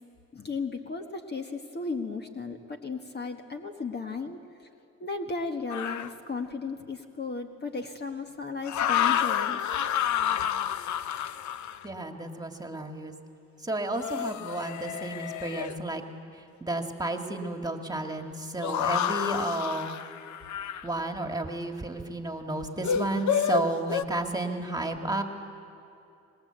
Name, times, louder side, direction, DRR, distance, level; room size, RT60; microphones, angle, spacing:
voice 1, 0.3-4.7 5.0-9.6, left 4 dB, 35° left, 4 dB, 1.5 m, -35 dB
sound 1, 5.7-6.1 8.6-11.9 13.9-15.8 18.6-20.9 22.8-24.0, left 9 dB, 70° left, 0.8 m, -29 dB
voice 2, 11.8-13.1 13.6-16.0 16.3-19.9 20.8-25.2, right 2 dB, 10° right, 4 dB, 2.1 m, -32 dB
25.5 x 20.5 x 8.1 m, 2.6 s
cardioid pair, 90°, 30 cm